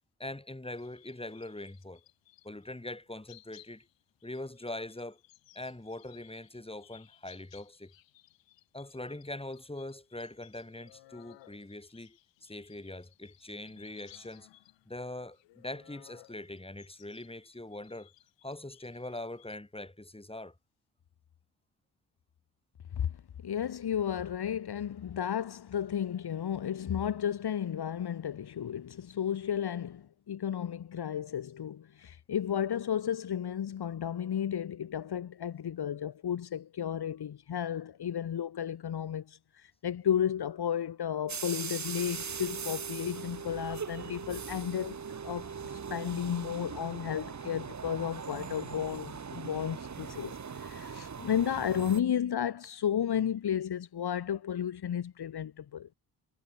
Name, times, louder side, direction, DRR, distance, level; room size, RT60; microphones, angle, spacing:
voice 1, 0.2-2.0 2.4-3.9 4.2-5.2 5.5-7.9 8.7-14.5 14.9-18.1 18.4-20.5, left 1 dB, 15° left, 7.9 m, -42 dB
sound 1, 0.7-2.8 3.3-19.6, left 16 dB, 80° left, 6.8 m, -60 dB
voice 2, 23.4-45.0 45.2-45.5 45.9-55.9, left 9 dB, 60° left, 3.4 m, -33 dB
sound 2, 41.3-52.0, right 6 dB, 40° right, 2.2 m, -40 dB
supercardioid pair, 50°, 44 cm